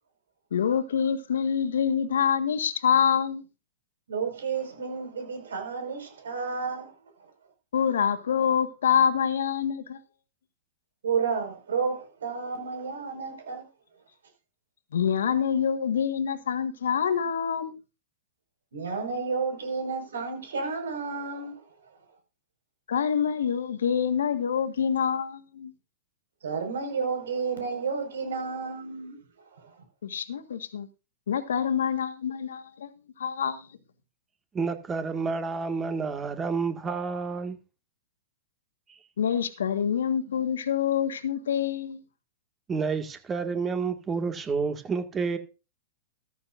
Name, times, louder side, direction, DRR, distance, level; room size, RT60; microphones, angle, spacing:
voice 1, 0.5-3.4 7.7-10.0 14.9-17.7 22.9-25.7 30.0-30.9 31.3-32.9 33.2-33.7 39.2-42.0, left 8 dB, 75° left, 1.7 m, -26 dB
voice 2, 4.1-7.3 11.0-13.7 18.7-22.0 26.4-29.8, right 5 dB, 75° right, 5.3 m, -32 dB
voice 3, 34.5-37.6 42.7-45.4, right 5 dB, 20° right, 1.9 m, -29 dB
14.0 x 13.5 x 2.6 m
hypercardioid pair, 110°, 0 cm